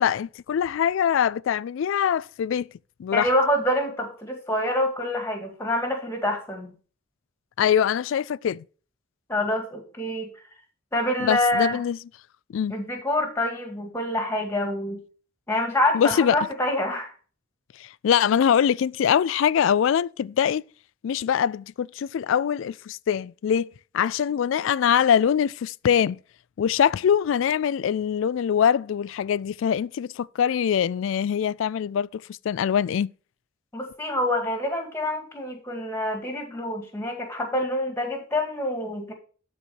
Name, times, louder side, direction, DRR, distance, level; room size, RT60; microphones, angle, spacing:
voice 1, 0.0-2.7 3.0-3.3 7.6-8.6 11.2-12.0 12.5-12.7 15.9-16.4 17.8-20.6 21.0-26.2 26.6-33.1, left 8 dB, 70° left, 0.3 m, -23 dB
voice 2, 3.1-6.7 9.3-10.3 10.9-11.8 12.7-15.0 15.5-17.1 33.7-39.1, left 1 dB, 10° left, 2.0 m, -26 dB
12.0 x 4.2 x 4.5 m
head